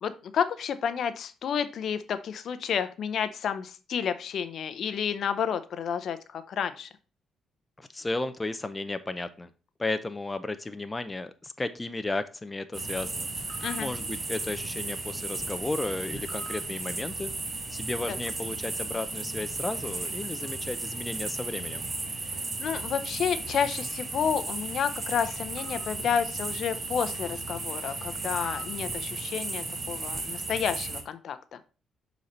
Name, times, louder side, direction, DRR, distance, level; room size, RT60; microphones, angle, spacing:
voice 1, 0.0-6.9 13.6-13.9 18.1-18.2 22.6-31.6, left 7 dB, 65° left, 12 dB, 0.6 m, -30 dB
voice 2, 7.8-9.5 9.8-17.3 17.7-21.9, left 2 dB, 20° left, 10 dB, 0.5 m, -34 dB
sound 1, 12.7-31.0, right 3 dB, 35° right, 1.3 m, -35 dB
6.5 x 4.0 x 4.2 m, 0.34 s
cardioid pair, 90°, 0 cm